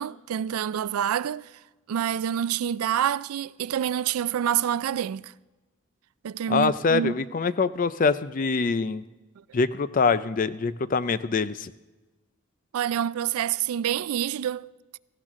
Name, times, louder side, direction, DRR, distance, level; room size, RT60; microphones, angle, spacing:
voice 1, 0.0-1.5 1.9-5.3 6.2-7.1 12.7-14.7, right 9 dB, 85° right, 0.3 m, -27 dB
voice 2, 6.5-9.0 9.5-11.7, left 4 dB, 40° left, 0.4 m, -24 dB
18.0 x 15.0 x 3.7 m
head